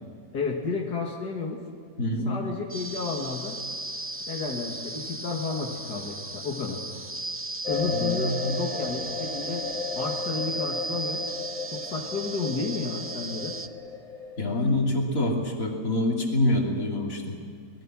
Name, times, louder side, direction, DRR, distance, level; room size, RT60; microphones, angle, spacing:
voice 1, 0.3-1.6 2.3-3.6 4.3-6.8 7.7-9.6 10.0-11.2 11.7-13.6, left 4 dB, 90° left, 0 dB, 2.6 m, -32 dB
voice 2, 2.0-2.3 7.9-8.5 14.4-17.4, left 1 dB, 55° left, 0 dB, 3.4 m, -26 dB
sound 1, 2.7-13.7, right 2 dB, 20° right, 0.3 m, -36 dB
sound 2, 7.6-14.6, left 5 dB, 25° left, 1.6 m, -35 dB
26.0 x 20.5 x 6.2 m, 2.3 s
omnidirectional pair, 1.7 m